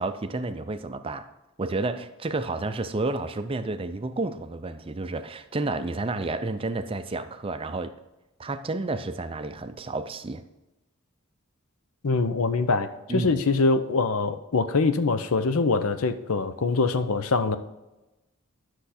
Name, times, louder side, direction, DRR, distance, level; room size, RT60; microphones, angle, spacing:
voice 1, 0.0-1.3 1.6-7.9 8.4-10.4 13.1-13.4, right 2 dB, 25° right, 0.4 m, -31 dB
voice 2, 12.0-17.6, left 3 dB, 70° left, 0.6 m, -24 dB
10.5 x 6.4 x 4.3 m
head